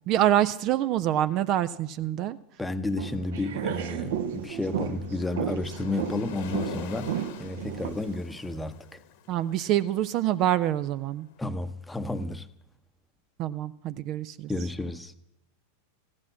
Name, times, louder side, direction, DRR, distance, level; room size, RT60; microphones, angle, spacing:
voice 1, 0.1-2.4 9.3-11.3 13.4-14.5, right 12 dB, 40° right, 0.5 m, -26 dB
voice 2, 2.6-9.0 11.4-12.5 14.5-15.1, left 2 dB, 5° left, 0.9 m, -32 dB
sound 1, 2.9-8.2, right 8 dB, 55° right, 0.9 m, -33 dB
Waves surf, 4.1-11.2, left 8 dB, 50° left, 1.2 m, -46 dB
15.5 x 10.5 x 7.4 m
figure-of-eight pair, 90°, 0 cm